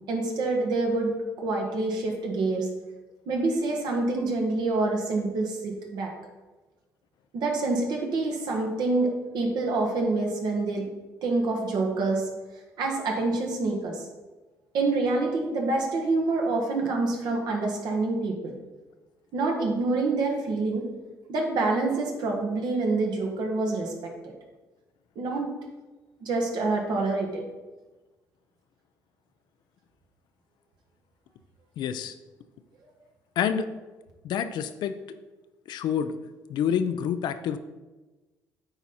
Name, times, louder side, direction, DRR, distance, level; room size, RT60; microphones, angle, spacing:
voice 1, 0.1-2.7 3.2-6.1 7.3-10.8 11.2-12.2 12.8-14.0 14.7-18.6 19.3-20.9 21.3-24.3 25.1-25.5 26.2-27.4, right 3 dB, 70° right, 1 dB, 1.6 m, -27 dB
voice 2, 31.8-32.2 33.4-33.7 34.2-35.0 35.7-36.2 36.5-37.6, left 8 dB, 75° left, 10 dB, 0.5 m, -27 dB
8.9 x 4.0 x 4.3 m, 1.2 s
supercardioid pair, 75°, 8 cm